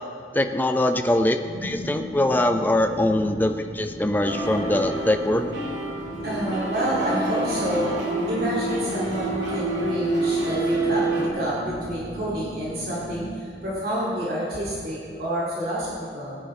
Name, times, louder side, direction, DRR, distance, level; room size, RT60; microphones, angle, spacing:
voice 1, 0.3-5.5, left 1 dB, 10° left, 6 dB, 0.5 m, -22 dB
sound 1, 1.4-13.4, equal, 75° left, 3.2 m, -37 dB
sound 2, 4.2-11.3, right 2 dB, 85° right, 1.9 m, -28 dB
voice 2, 6.2-8.0 8.3-16.4, equal, 55° right, -7 dB, 2.5 m, -28 dB
19.0 x 9.7 x 3.2 m, 2.3 s
head